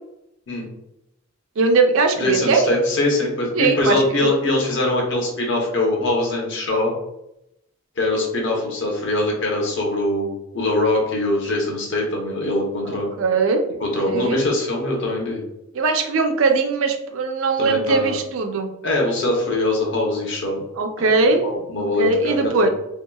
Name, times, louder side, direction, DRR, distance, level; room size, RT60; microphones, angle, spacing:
voice 1, 1.6-2.7 3.6-4.3 12.9-13.6 14.1-14.4 15.7-18.7 20.8-21.4 22.0-22.7, right 3 dB, 70° right, 5 dB, 0.4 m, -20 dB
voice 2, 2.2-6.9 8.0-13.1 13.8-15.4 17.6-18.1 18.8-20.6 21.0-21.1 21.4-22.7, left 2 dB, 55° left, -1 dB, 0.8 m, -22 dB
2.8 x 2.7 x 2.2 m, 0.82 s
head